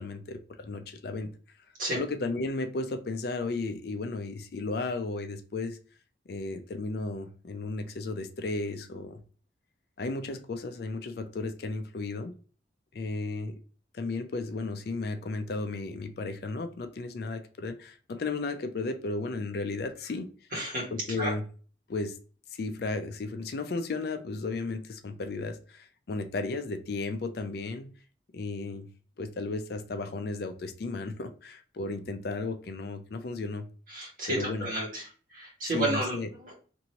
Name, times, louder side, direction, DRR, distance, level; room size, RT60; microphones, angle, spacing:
voice 1, 0.0-1.3 1.9-5.8 6.3-9.2 10.0-12.3 12.9-13.6 13.9-20.3 20.9-21.5 21.9-22.2 22.5-27.9 28.3-28.9 29.2-33.7 34.3-34.7 35.6-36.3, left 3 dB, 55° left, 0.4 m, -34 dB
voice 2, 20.5-20.9 21.2-21.3 33.9-35.0 35.3-36.2 36.4-36.5, right 1 dB, 45° right, 1.3 m, -31 dB
2.8 x 2.6 x 2.8 m
head